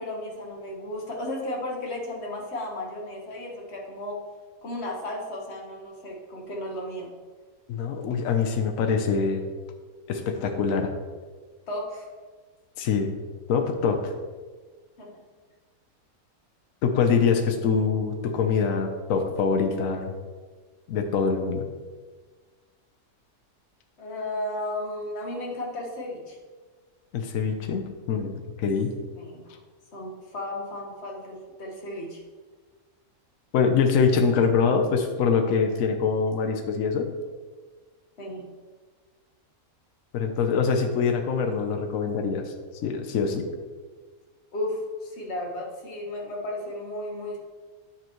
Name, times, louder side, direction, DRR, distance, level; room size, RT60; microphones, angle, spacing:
voice 1, 0.0-4.2 4.6-7.1 11.7-12.1 15.0-15.2 24.0-26.4 29.1-29.6 29.9-32.2 38.2-38.5 44.5-47.4, left 1 dB, 45° left, -1 dB, 1.5 m, -34 dB
voice 2, 7.7-9.5 10.1-10.9 12.8-13.1 13.5-14.1 16.8-20.1 20.9-21.6 27.1-28.9 33.5-37.1 40.1-42.5 42.8-43.5, left 5 dB, 65° left, 5 dB, 1.1 m, -24 dB
9.3 x 5.6 x 3.1 m, 1.4 s
omnidirectional pair, 1.6 m